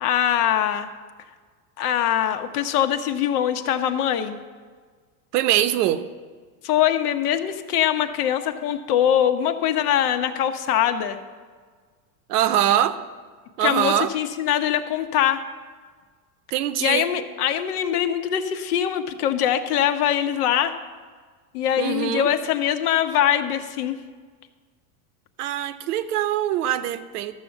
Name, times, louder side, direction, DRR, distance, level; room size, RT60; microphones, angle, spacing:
voice 1, 0.0-0.9 1.8-4.4 6.6-11.2 13.6-15.5 16.8-20.8 21.5-24.0, left 10 dB, 75° left, 8 dB, 1.1 m, -22 dB
voice 2, 5.3-6.0 12.3-13.0 13.6-14.1 16.5-17.1 21.8-22.3 25.4-27.3, right 11 dB, 80° right, 12 dB, 0.9 m, -23 dB
13.0 x 6.6 x 7.1 m, 1.5 s
supercardioid pair, 140°, 46 cm